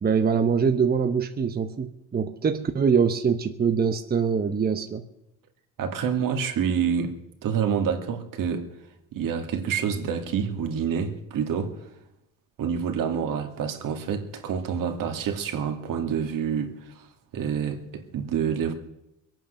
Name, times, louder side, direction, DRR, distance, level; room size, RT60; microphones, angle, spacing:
voice 1, 0.0-5.0, right 6 dB, 25° right, 1.0 m, -23 dB
voice 2, 5.8-8.7 9.1-11.8 12.6-17.1 17.3-18.7, right 7 dB, 65° right, 2.4 m, -27 dB
22.0 x 9.1 x 6.6 m
cardioid pair, 95°, 36 cm